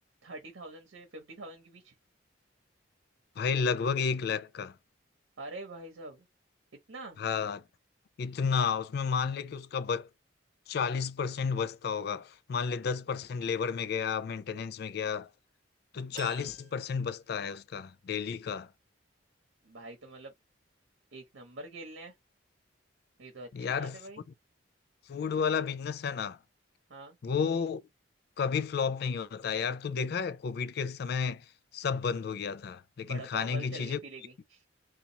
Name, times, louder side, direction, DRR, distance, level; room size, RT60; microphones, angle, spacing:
voice 1, 0.2-1.9 5.4-6.3 6.9-7.2 19.6-20.3 21.1-22.1 23.2-24.2 26.9-27.2 33.0-34.6, right 2 dB, 70° right, 0.9 m, -45 dB
voice 2, 3.4-4.8 7.2-7.6 8.2-10.1 10.7-15.3 15.9-18.7 23.5-24.0 25.1-26.4 27.2-27.8 28.4-34.0, left 6 dB, 50° left, 0.3 m, -32 dB
sound 1, 16.1-17.8 18.2-18.3 19.5-19.6, right 7 dB, 40° right, 0.5 m, -51 dB
2.9 x 2.4 x 3.9 m
head